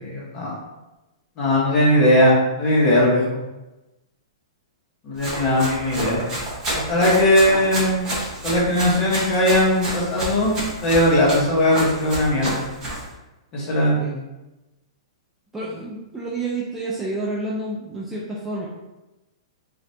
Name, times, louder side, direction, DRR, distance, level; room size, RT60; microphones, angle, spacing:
voice 1, 0.2-0.6 1.4-3.4 5.0-6.2 6.9-8.1 8.4-12.6 13.5-14.0, left 1 dB, 25° left, -5 dB, 1.0 m, -19 dB
Run, 5.2-13.1, right 1 dB, 20° right, 0.8 m, -30 dB
voice 2, 15.5-18.7, right 2 dB, 5° right, -6 dB, 0.3 m, -29 dB
2.6 x 2.5 x 3.2 m, 1.0 s
hypercardioid pair, 155°, 3 cm